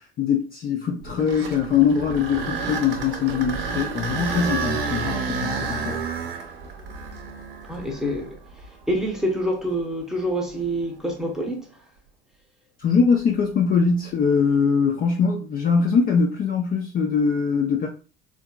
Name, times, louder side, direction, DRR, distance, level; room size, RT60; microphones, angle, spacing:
voice 1, 0.2-6.0 12.8-17.9, left 6 dB, 30° left, 0.5 m, -22 dB
sound 1, 1.0-9.1 9.7-9.8 10.5-10.6 14.2-14.5, right 4 dB, 70° right, 0.6 m, -30 dB
voice 2, 7.7-8.4 8.9-11.7, equal, ahead, 0.8 m, -26 dB
3.5 x 2.5 x 2.3 m
figure-of-eight pair, 60°, 29 cm